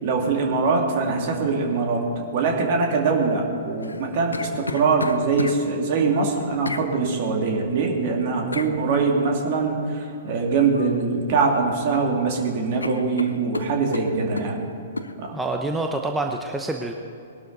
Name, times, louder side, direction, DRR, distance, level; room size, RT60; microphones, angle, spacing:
voice 1, 0.0-14.7 15.2-15.3, right 4 dB, 45° right, 1 dB, 2.6 m, -23 dB
sound 1, 3.8-5.6 6.6-6.9 8.5-8.7 10.7-11.0 11.4-12.0 12.3-12.5 12.8-14.5 15.0-15.1, left 3 dB, 80° left, 0.8 m, -32 dB
voice 2, 15.3-16.9, right 2 dB, 5° right, 3 dB, 0.8 m, -27 dB
20.0 x 12.0 x 4.1 m, 2.8 s
figure-of-eight pair, 115°, 0 cm